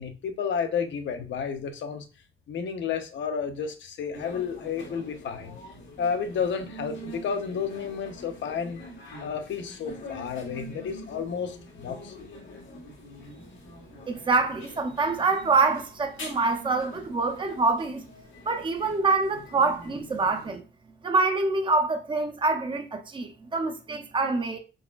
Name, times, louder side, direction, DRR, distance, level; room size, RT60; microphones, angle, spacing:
voice 1, 0.0-2.1 2.5-5.5 6.0-8.8 9.2-12.3, left 6 dB, 70° left, 0.7 m, -31 dB
sound 1, 4.1-20.6, left 1 dB, 85° left, 1.5 m, -44 dB
voice 2, 14.1-18.1 18.5-20.6 21.0-24.6, right 3 dB, 25° right, 0.6 m, -25 dB
4.7 x 3.4 x 2.4 m
cardioid pair, 125°, 20 cm